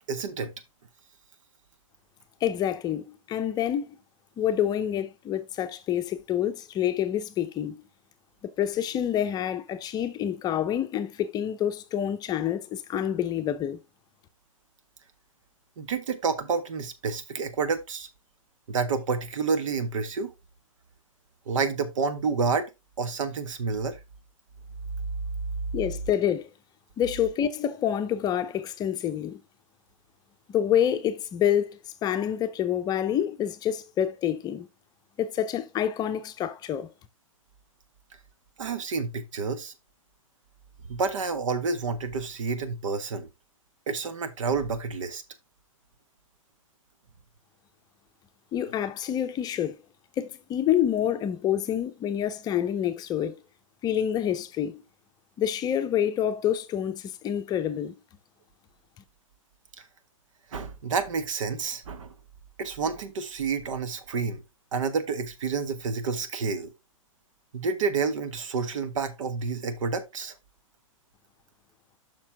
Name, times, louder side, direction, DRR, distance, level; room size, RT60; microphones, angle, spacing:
voice 1, 0.1-0.5 15.8-18.1 18.7-20.3 21.5-22.7 23.0-24.0 38.6-39.7 40.9-43.3 43.9-45.2 59.8-59.9 60.5-62.1 62.6-64.4 64.7-66.7 67.5-70.3, right 5 dB, 65° right, 1.5 m, -29 dB
voice 2, 2.4-3.9 4.4-7.8 8.6-13.8 25.7-26.5 27.0-29.4 30.5-34.7 35.2-36.9 48.5-49.8 50.2-53.4 53.8-54.8 55.4-57.9, left 10 dB, 25° left, 0.7 m, -27 dB
7.2 x 6.1 x 3.4 m
hypercardioid pair, 125°, 17 cm